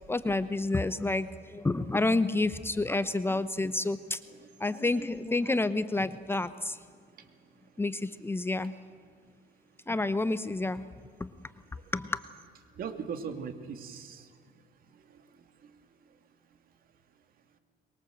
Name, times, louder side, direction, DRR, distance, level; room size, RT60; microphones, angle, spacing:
voice 1, 0.1-4.2 4.6-6.8 7.8-8.7 9.9-10.8 11.2-11.3 11.9-12.2, left 2 dB, 15° left, 13 dB, 0.8 m, -29 dB
voice 2, 12.7-14.3 14.9-15.7, right 6 dB, 60° right, 8 dB, 2.3 m, -40 dB
23.5 x 22.0 x 7.8 m, 2.1 s
cardioid pair, 110°, 17 cm